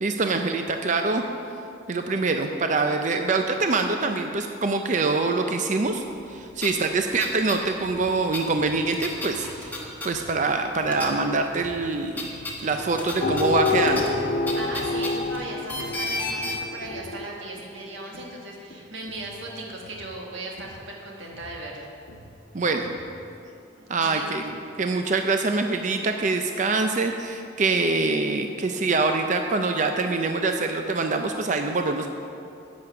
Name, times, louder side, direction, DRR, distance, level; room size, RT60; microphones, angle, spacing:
voice 1, 0.0-1.2 1.9-6.0 6.3-9.5 10.0-12.3 12.6-14.1 22.5-22.9 23.9-32.1, right 3 dB, 40° right, 5 dB, 0.5 m, -24 dB
sound 1, 6.2-6.3 6.5-7.6 7.9-10.6 10.9-11.5 11.8-16.5, left 2 dB, 10° left, 1.2 m, -34 dB
sound 2, 7.8-15.3 15.7-23.3, equal, 90° left, 0.9 m, -48 dB
sound 3, 13.2-17.2, left 3 dB, 40° left, 0.5 m, -27 dB
voice 2, 14.5-21.9 23.4-24.3, right 2 dB, 70° right, -1 dB, 1.5 m, -38 dB
10.0 x 8.3 x 5.9 m, 2.6 s
head